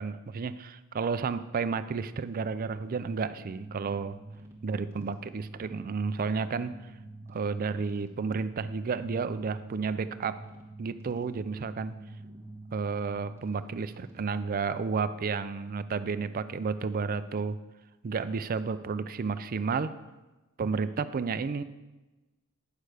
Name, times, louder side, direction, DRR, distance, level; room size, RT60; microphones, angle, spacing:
voice 1, 0.0-4.2 4.6-6.8 7.3-10.4 10.8-11.9 12.7-17.6 18.0-20.0 20.6-21.6, right 5 dB, 40° right, 12 dB, 0.4 m, -31 dB
sound 1, 2.3-14.5, right 2 dB, 10° right, 1.2 m, -47 dB
9.2 x 6.6 x 4.9 m, 1.1 s
head